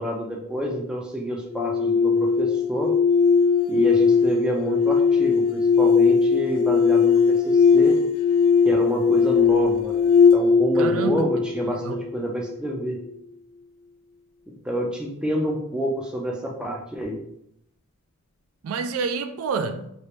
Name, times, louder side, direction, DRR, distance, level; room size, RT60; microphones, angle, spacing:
voice 1, 0.0-2.9 3.7-8.0 8.6-9.9 10.3-13.0 14.6-17.2, right 1 dB, 5° right, 0.4 m, -28 dB
sound 1, 1.5-12.5, left 5 dB, 85° left, 0.4 m, -19 dB
voice 2, 10.8-11.3 11.7-12.0 18.6-19.9, right 5 dB, 80° right, 0.3 m, -28 dB
2.9 x 2.9 x 3.2 m
head